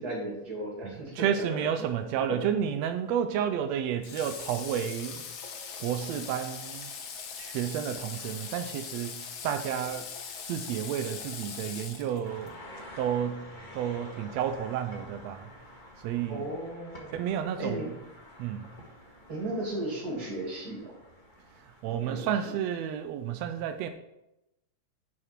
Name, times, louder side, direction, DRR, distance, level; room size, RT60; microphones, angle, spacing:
voice 1, 0.0-1.3 1.5-1.6 16.3-17.1 17.6-17.9 19.3-20.9 21.8-22.5, right 1 dB, 30° right, -3 dB, 2.9 m, -35 dB
voice 2, 0.8-5.2 5.8-6.9 7.4-10.0 10.5-12.6 13.0-13.4 13.7-15.5 16.0-16.4 17.1-17.9 18.4-18.7 21.6-23.9, right 9 dB, 85° right, 8 dB, 1.5 m, -31 dB
Water / Water tap faucet, 4.0-12.5, left 6 dB, 70° left, 1.1 m, -41 dB
sound 1, 12.2-22.3, left 1 dB, 25° left, 1.0 m, -49 dB
10.0 x 6.3 x 4.5 m, 0.89 s
omnidirectional pair, 3.6 m